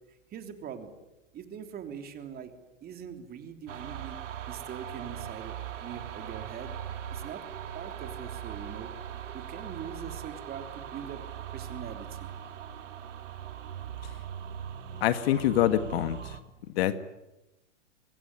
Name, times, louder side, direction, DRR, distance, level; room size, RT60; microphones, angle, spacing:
voice 1, 0.3-0.9 1.3-2.5 2.8-4.2 4.5-6.7 7.1-7.4 7.7-8.9 9.3-11.2 11.5-12.3, right 8 dB, 25° right, 6 dB, 3.3 m, -42 dB
sound 1, 3.7-16.4, right 9 dB, 70° right, 3.3 m, -40 dB
voice 2, 15.0-16.2 16.7-17.0, left 12 dB, 55° left, 11 dB, 1.9 m, -25 dB
25.0 x 21.0 x 9.8 m, 0.96 s
hypercardioid pair, 130°, 38 cm